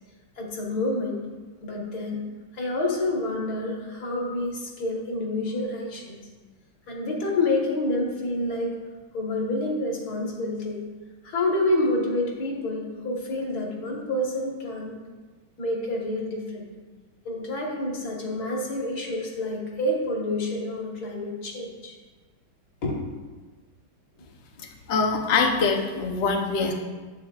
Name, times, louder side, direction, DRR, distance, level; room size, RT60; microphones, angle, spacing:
voice 1, 0.4-1.3 1.6-2.2 2.5-6.2 6.9-8.7 9.1-10.8 11.2-15.0 15.6-16.7 17.3-21.9 22.8-23.0, left 2 dB, 55° left, -1 dB, 1.7 m, -28 dB
voice 2, 24.9-26.7, left 4 dB, 80° left, 2 dB, 0.6 m, -23 dB
9.4 x 7.8 x 2.3 m, 1.3 s
omnidirectional pair, 2.2 m